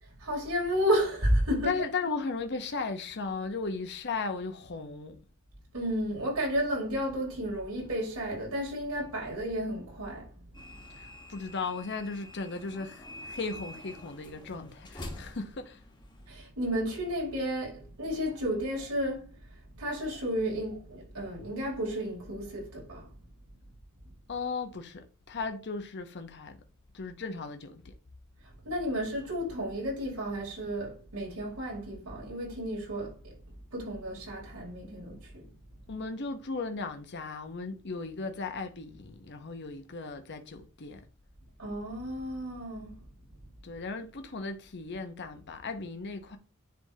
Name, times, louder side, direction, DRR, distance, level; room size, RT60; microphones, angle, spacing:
voice 1, 0.2-1.8 5.7-10.6 16.3-23.1 28.6-33.4 33.7-35.5 41.6-42.9, equal, 85° right, 3.5 m, -32 dB
voice 2, 1.6-5.2 11.0-15.8 24.3-26.6 26.9-27.9 35.9-41.0 43.6-46.4, left 4 dB, 50° left, 0.7 m, -36 dB
sound 1, 10.5-16.4, left 1 dB, 20° left, 1.1 m, -46 dB
10.0 x 3.5 x 2.7 m
head